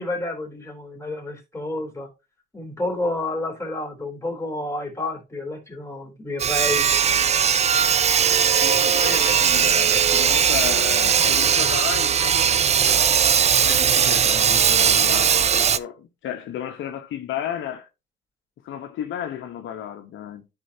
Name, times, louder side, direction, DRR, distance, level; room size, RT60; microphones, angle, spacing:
voice 1, 0.0-2.1 2.5-7.0, left 2 dB, 15° left, 3.6 m, -30 dB
Sawing, 6.4-15.8, right 7 dB, 35° right, 0.4 m, -19 dB
voice 2, 8.6-13.2 13.6-17.9 18.6-20.4, left 10 dB, 80° left, 1.1 m, -33 dB
12.0 x 4.5 x 2.8 m
cardioid pair, 90°, 20 cm